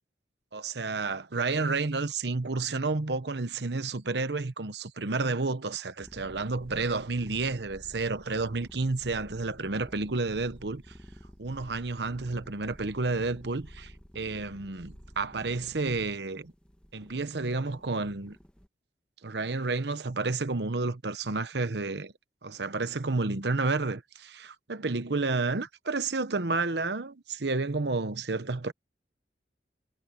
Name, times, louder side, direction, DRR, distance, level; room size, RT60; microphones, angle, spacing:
voice 1, 0.5-10.8 11.4-16.5 16.9-18.4 19.2-22.1 22.4-28.7, right 3 dB, 70° right, 1.0 m, -31 dB
sound 1, 6.0-18.7, equal, 5° left, 1.5 m, -51 dB
head